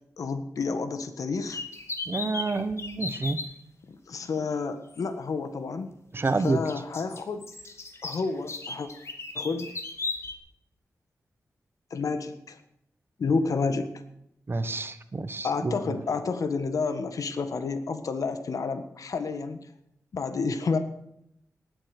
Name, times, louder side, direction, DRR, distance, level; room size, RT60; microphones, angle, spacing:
voice 1, 0.2-1.6 4.1-5.9 6.4-7.5 8.0-8.9 9.3-9.7 11.9-12.6 13.2-13.9 15.4-19.7 20.1-20.8, left 4 dB, 75° left, 9 dB, 1.5 m, -30 dB
sound 1, 1.5-3.5 4.9-5.0 6.3-10.3, left 3 dB, 50° left, 2.3 m, -36 dB
voice 2, 2.1-3.4 6.1-6.6 14.5-16.0, right 3 dB, 40° right, 11 dB, 1.2 m, -28 dB
19.0 x 8.6 x 6.7 m, 0.77 s
wide cardioid pair, 90°, 6 cm